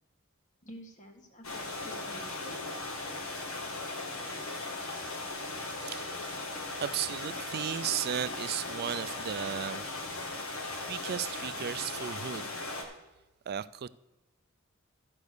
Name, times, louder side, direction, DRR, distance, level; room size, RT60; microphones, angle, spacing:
voice 1, 0.6-2.6, equal, 35° left, 1.5 m, -50 dB
sound 1, 1.4-12.8, left 2 dB, 85° left, 1.7 m, -38 dB
voice 2, 5.8-6.4 6.8-9.8 10.8-12.5 13.5-13.9, right 9 dB, 50° right, 0.3 m, -35 dB
13.0 x 5.3 x 6.5 m
head